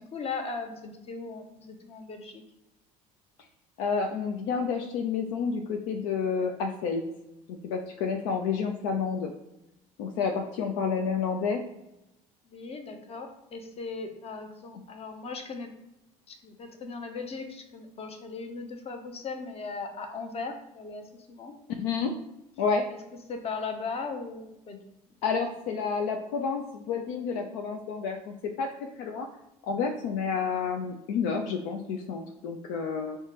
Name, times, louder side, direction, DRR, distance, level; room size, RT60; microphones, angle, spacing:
voice 1, 0.1-2.4 12.5-15.7 16.3-21.5 23.3-24.8 25.7-25.8, left 4 dB, 30° left, 5 dB, 0.7 m, -38 dB
voice 2, 3.8-7.0 7.5-9.3 10.0-11.6 21.7-22.1 22.6-22.8 25.2-28.7 29.0-29.3 29.7-33.2, left 5 dB, 60° left, 3 dB, 0.4 m, -30 dB
5.5 x 2.2 x 2.8 m, 0.90 s
figure-of-eight pair, 60°, 19 cm